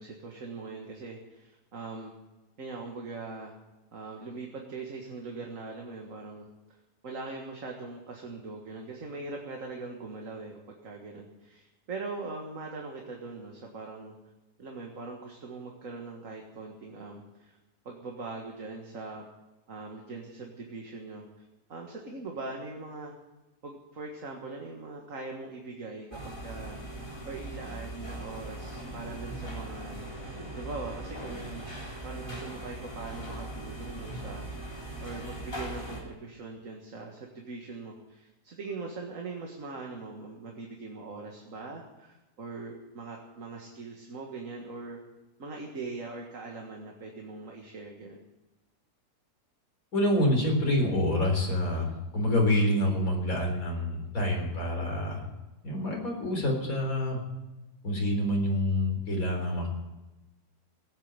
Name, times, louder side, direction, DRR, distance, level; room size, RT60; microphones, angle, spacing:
voice 1, 0.0-2.1 2.6-3.5 3.9-6.5 7.0-14.2 14.6-17.6 17.9-19.2 19.7-21.4 21.7-23.1 23.6-26.8 27.2-30.1 30.5-34.5 35.0-45.0 45.4-48.2, right 3 dB, 55° right, 1 dB, 2.1 m, -41 dB
sound 1, 26.1-36.0, right 1 dB, 20° left, 3.7 m, -40 dB
voice 2, 49.9-55.3 55.6-57.2 57.8-59.7, left 1 dB, 60° left, 0 dB, 4.4 m, -27 dB
18.0 x 8.8 x 9.0 m, 1.1 s
omnidirectional pair, 1.7 m